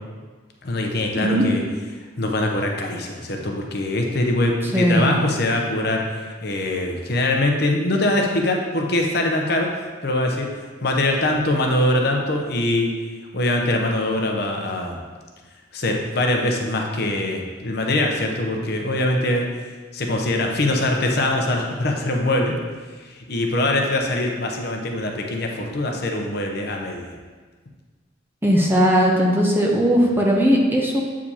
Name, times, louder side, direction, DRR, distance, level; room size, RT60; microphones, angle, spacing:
voice 1, 0.6-1.6 2.0-9.7 10.0-10.5 10.8-12.9 13.3-15.0 15.7-19.5 19.9-22.6 22.9-27.2, left 1 dB, 55° left, 1 dB, 0.8 m, -23 dB
voice 2, 4.7-5.2 28.4-31.0, equal, 10° right, -1 dB, 0.7 m, -18 dB
8.1 x 5.0 x 2.9 m, 1.4 s
head